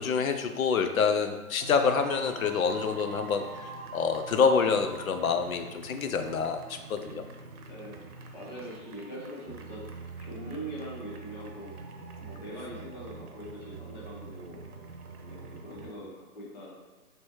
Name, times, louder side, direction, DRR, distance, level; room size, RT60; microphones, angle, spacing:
voice 1, 0.0-7.2, left 5 dB, 70° left, 7 dB, 0.6 m, -27 dB
sound 1, 1.6-15.9, right 4 dB, 85° right, 0.8 m, -44 dB
voice 2, 6.9-7.3 7.7-11.7 12.2-14.6 15.2-16.7, equal, 30° left, -5 dB, 0.9 m, -43 dB
4.8 x 3.0 x 3.0 m, 1.3 s
hypercardioid pair, 165°, 44 cm